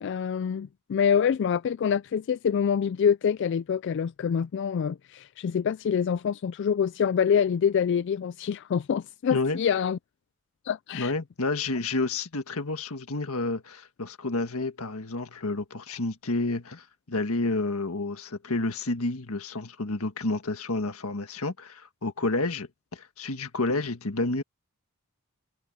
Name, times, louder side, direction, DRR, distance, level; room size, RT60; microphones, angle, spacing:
voice 1, 0.0-10.0 10.7-11.1, left 7 dB, 55° left, 0.3 m, -26 dB
voice 2, 10.9-24.4, left 2 dB, 80° left, 1.6 m, -30 dB
head